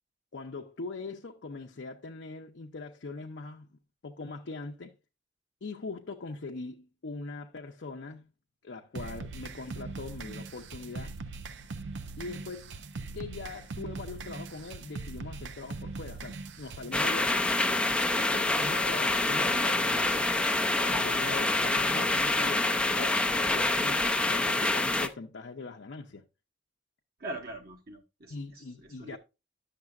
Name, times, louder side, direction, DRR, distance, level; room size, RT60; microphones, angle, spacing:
voice 1, 0.3-3.7 4.0-4.9 5.6-8.3 8.6-11.1 12.2-12.8 13.1-17.6 18.2-20.3 20.8-26.2 28.3-29.2, left 3 dB, 80° left, 0.6 m, -41 dB
sound 1, 9.0-16.9, right 3 dB, 80° right, 0.6 m, -41 dB
sound 2, 16.9-25.1, left 2 dB, 5° left, 0.4 m, -26 dB
voice 2, 27.2-29.2, right 2 dB, 55° right, 1.1 m, -42 dB
10.5 x 6.6 x 2.4 m
head